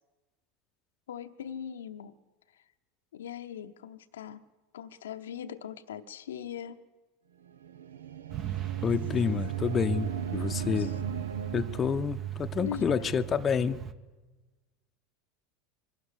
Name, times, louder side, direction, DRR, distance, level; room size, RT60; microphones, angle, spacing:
voice 1, 1.1-2.2 2.5-2.6 3.1-4.4 4.7-6.8 10.8-11.0 12.6-13.0, left 9 dB, 75° left, 10 dB, 0.8 m, -40 dB
sound 1, 7.4-12.1, right 7 dB, 75° right, 0.7 m, -39 dB
Truck, 8.3-13.9, right 13 dB, 35° right, 1.2 m, -36 dB
voice 2, 8.8-10.9 11.5-13.8, left 7 dB, 30° left, 8 dB, 0.8 m, -29 dB
22.5 x 13.0 x 9.9 m, 1.2 s
hypercardioid pair, 85°, 0 cm